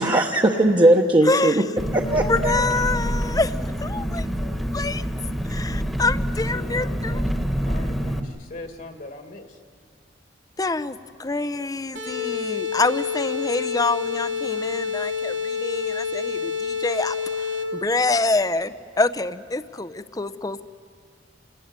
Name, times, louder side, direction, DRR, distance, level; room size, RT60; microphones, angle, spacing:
voice 1, 0.0-1.6 1.9-2.6, right 1 dB, 25° right, 0 dB, 1.1 m, -18 dB
voice 2, 1.2-1.6 2.1-5.0 5.5-7.2 10.6-20.6, left 3 dB, 20° left, 14 dB, 0.7 m, -26 dB
Engine, 1.8-8.2, equal, ahead, 1.4 m, -26 dB
voice 3, 6.5-7.3 7.7-9.5, left 2 dB, 50° left, 5 dB, 1.8 m, -40 dB
sound 1, 11.9-17.9, left 6 dB, 75° right, 3.1 m, -28 dB
28.0 x 20.5 x 9.6 m, 2.2 s
head